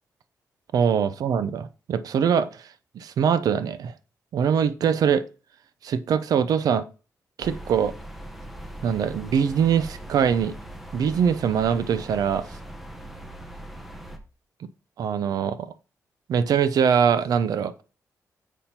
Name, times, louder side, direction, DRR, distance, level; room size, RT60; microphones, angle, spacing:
voice 1, 0.7-2.5 2.9-3.9 4.3-5.2 5.8-6.8 7.4-7.9 8.8-10.5 10.9-12.4 15.0-15.7 16.3-17.7, right 7 dB, 85° right, 0.6 m, -22 dB
sound 1, 7.4-14.2, right 1 dB, ahead, 1.0 m, -40 dB
7.1 x 5.8 x 4.3 m
wide cardioid pair, 125°, 6 cm